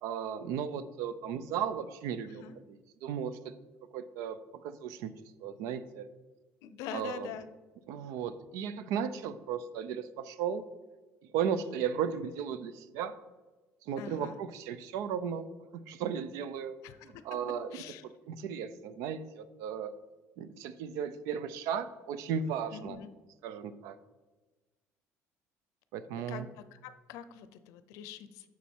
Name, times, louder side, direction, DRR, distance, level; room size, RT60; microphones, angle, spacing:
voice 1, 0.0-3.5 3.9-5.1 5.4-6.1 6.9-7.3 7.9-10.6 11.3-13.2 13.8-15.5 15.9-16.7 17.0-17.8 18.3-19.9 20.4-23.0 23.4-24.0 25.9-26.5, right 7 dB, 80° right, 14 dB, 0.5 m, -35 dB
voice 2, 2.2-2.5 6.6-7.5 14.0-14.4 16.8-17.2 17.7-18.0 22.7-23.1 26.3-26.4 26.7-28.5, left 8 dB, 80° left, 12 dB, 0.6 m, -44 dB
7.1 x 6.1 x 4.5 m, 1.2 s
cardioid pair, 165°, 5 cm